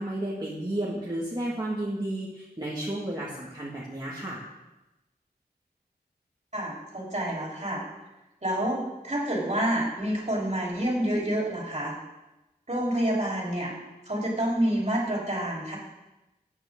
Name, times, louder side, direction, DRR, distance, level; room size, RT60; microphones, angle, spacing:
voice 1, 0.0-4.4, right 1 dB, 25° right, -6 dB, 2.0 m, -32 dB
voice 2, 6.5-7.8 8.4-11.9 12.7-13.7 14.1-15.8, right 1 dB, 40° right, -3 dB, 3.8 m, -28 dB
14.0 x 9.2 x 3.8 m, 1.0 s
wide cardioid pair, 70°, 17 cm